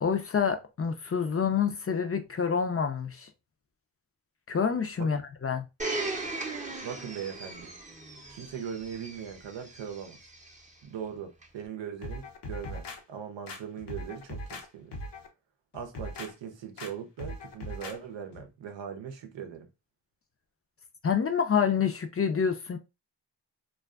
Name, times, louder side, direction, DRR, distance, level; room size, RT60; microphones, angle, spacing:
voice 1, 0.0-3.3 4.5-5.6 21.0-22.8, left 6 dB, 35° left, 0.4 m, -27 dB
Domestic sounds home sounds, 5.8-10.6 11.4-11.5, right 3 dB, 20° right, 0.6 m, -38 dB
voice 2, 6.8-7.7 8.3-10.2 10.8-15.0 15.7-19.7, right 7 dB, 90° right, 0.6 m, -40 dB
sound 1, 12.0-13.0 13.5-14.6 14.9-15.3 15.7-16.3 16.8-16.9 17.2-18.0 18.3-18.4, left 1 dB, 70° left, 0.7 m, -39 dB
2.4 x 2.3 x 2.3 m
cardioid pair, 55°, 43 cm